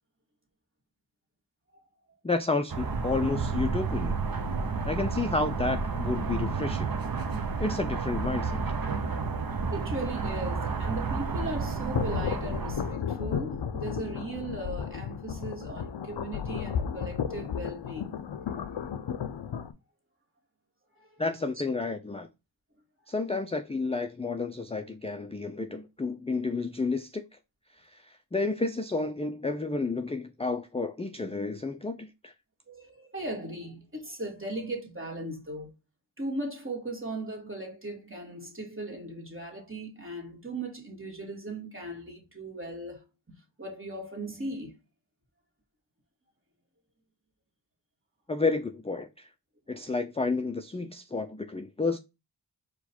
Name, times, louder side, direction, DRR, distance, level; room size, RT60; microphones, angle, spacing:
voice 1, 2.2-4.1 4.9-6.9 7.6-8.6 21.2-22.3 23.1-27.2 27.8-32.3 48.3-49.3 49.7-52.0, left 3 dB, 15° left, 0.3 m, -31 dB
sound 1, 2.7-12.9, right 4 dB, 55° right, 0.7 m, -31 dB
voice 2, 9.7-18.2 20.9-21.2 32.7-35.7 36.2-44.8 49.7-49.9, right 1 dB, 30° right, 1.6 m, -38 dB
sound 2, 11.9-19.7, left 7 dB, 70° left, 0.5 m, -33 dB
4.6 x 2.3 x 4.2 m
wide cardioid pair, 50°, 44 cm